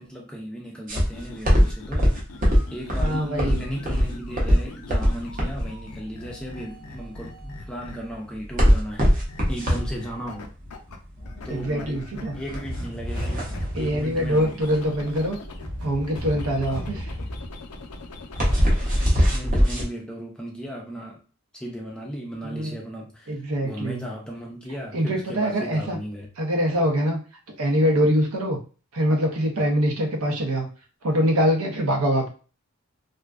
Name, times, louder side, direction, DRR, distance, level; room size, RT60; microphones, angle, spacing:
voice 1, 0.0-2.2 2.7-9.1 9.5-10.5 11.4-12.1 12.3-14.6 19.1-21.2 21.5-26.3, equal, 5° left, -1 dB, 0.4 m, -36 dB
sound 1, 0.9-19.8, equal, 40° right, 0.7 m, -22 dB
sound 2, 1.1-8.3 9.3-11.0 11.2-15.7 16.0-19.1, left 3 dB, 90° left, 0.4 m, -43 dB
voice 2, 3.0-3.6 11.5-12.3 13.7-15.4 15.8-17.1 22.4-22.8 23.3-24.0 24.9-26.0 26.4-27.2 27.6-28.6 28.9-30.7 31.0-32.3, equal, 90° right, 2 dB, 0.7 m, -24 dB
sound 3, 11.2-17.5, equal, 55° right, 0.9 m, -35 dB
2.5 x 2.2 x 2.3 m, 0.36 s
head